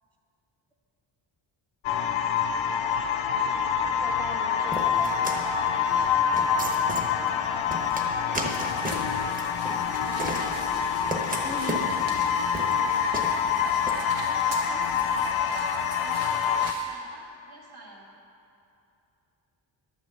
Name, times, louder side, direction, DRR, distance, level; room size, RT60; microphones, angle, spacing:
sound 1, 1.8-16.7, left 7 dB, 85° left, 0.7 m, -26 dB
voice 1, 4.0-5.1 11.4-11.9, equal, 5° left, 2 dB, 0.4 m, -39 dB
voice 2, 4.6-11.0 14.1-15.4 15.9-16.3 16.8-18.1, right 2 dB, 55° right, -3 dB, 2.3 m, -47 dB
sound 2, 4.7-13.9, right 1 dB, 20° right, 1.1 m, -35 dB
sound 3, 8.4-16.9, right 2 dB, 85° right, 1.9 m, -44 dB
12.0 x 6.3 x 7.7 m, 2.7 s
wide cardioid pair, 165°, 46 cm